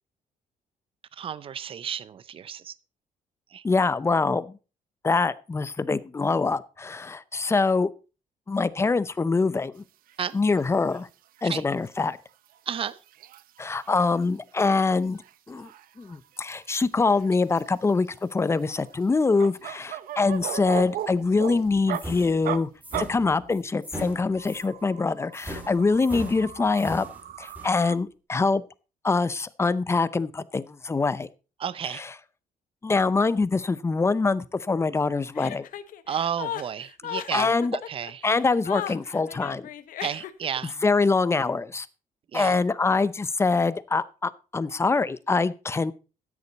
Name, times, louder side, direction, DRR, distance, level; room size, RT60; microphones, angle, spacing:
voice 1, 1.2-2.7 3.5-3.6 10.2-10.4 11.4-11.6 12.7-13.0 31.6-32.0 36.1-38.2 40.0-40.7 42.3-42.6, right 8 dB, 40° right, 0.6 m, -32 dB
voice 2, 3.6-4.5 5.0-7.9 8.5-9.8 10.3-11.1 11.4-12.2 13.6-15.2 15.5-15.7 16.0-22.7 23.0-27.1 27.4-28.6 29.0-31.3 31.9-32.1 32.8-35.7 37.3-37.8 38.2-39.7 40.8-41.9 42.3-45.9, left 4 dB, 20° left, 0.6 m, -24 dB
sound 1, 10.1-10.3 10.6-10.7 10.9-11.0 11.4-11.5 11.9-12.0 12.3-14.2 14.5-14.7 15.0-16.8 17.1-17.9 18.4-22.0 22.4-22.6 22.9-23.1 24.2-28.0, right 12 dB, 80° right, 0.8 m, -38 dB
sound 2, 21.9-24.7 25.3-27.8, equal, 10° right, 3.0 m, -40 dB
Chuckle chortle, 35.3-40.6, left 11 dB, 70° left, 1.0 m, -36 dB
13.0 x 9.7 x 4.1 m
cardioid pair, 145°, 15 cm